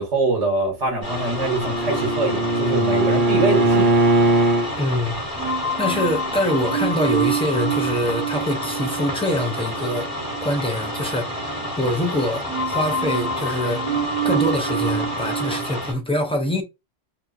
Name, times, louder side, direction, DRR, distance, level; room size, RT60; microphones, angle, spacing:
voice 1, 0.0-4.0, right 3 dB, 80° right, 1.3 m, -23 dB
Bowed string instrument, 0.9-4.7, right 1 dB, 55° right, 0.7 m, -20 dB
sound 1, 1.0-15.9, left 1 dB, 35° left, 1.4 m, -30 dB
sound 2, 1.6-4.9 5.4-12.2 12.5-15.7, right 5 dB, 50° left, 1.2 m, -28 dB
voice 2, 4.7-5.2 5.8-11.4 11.8-13.8 14.2-16.6, left 1 dB, 10° left, 0.3 m, -24 dB
2.9 x 2.3 x 2.4 m
omnidirectional pair, 1.2 m